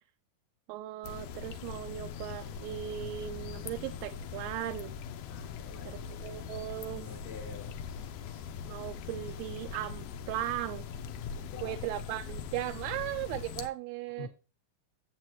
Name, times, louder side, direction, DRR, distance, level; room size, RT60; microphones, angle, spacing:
voice 1, 0.7-5.0 5.9-7.0 8.7-10.9 11.6-14.3, right 14 dB, 85° right, 8 dB, 2.5 m, -37 dB
sound 1, 1.0-13.7, left 7 dB, 85° left, 1.8 m, -41 dB
voice 2, 5.3-6.7 6.9-8.5 11.4-11.9 14.2-14.3, left 3 dB, 45° left, -6 dB, 1.4 m, -48 dB
9.7 x 7.7 x 3.0 m, 0.32 s
omnidirectional pair, 4.6 m